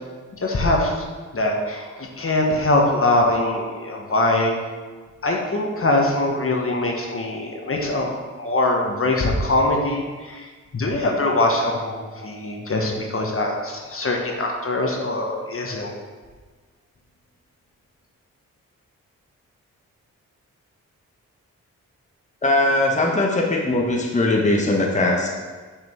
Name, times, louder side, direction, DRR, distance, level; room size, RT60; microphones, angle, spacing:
voice 1, 0.4-0.9 1.3-4.6 5.2-10.5 10.7-15.9, left 2 dB, 45° left, 1 dB, 1.3 m, -22 dB
voice 2, 22.4-25.3, left 2 dB, 20° left, -1 dB, 1.1 m, -20 dB
6.1 x 5.0 x 4.6 m, 1.4 s
cardioid pair, 55°, 32 cm